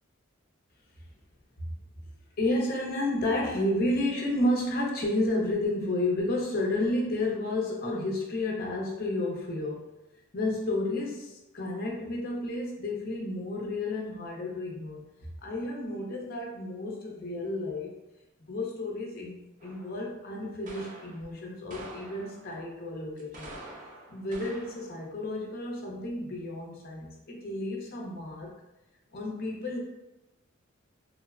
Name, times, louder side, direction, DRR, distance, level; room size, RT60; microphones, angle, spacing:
voice 1, 2.4-9.8 10.3-15.0 15.4-17.9 18.5-19.3 19.6-23.5 24.1-28.5 29.1-29.8, left 1 dB, 50° left, -1 dB, 0.6 m, -31 dB
sound 1, 19.6-20.0 20.7-21.2 21.7-22.6 23.2-25.0, right 2 dB, 40° right, 0.4 m, -46 dB
3.1 x 2.0 x 2.4 m, 0.94 s
head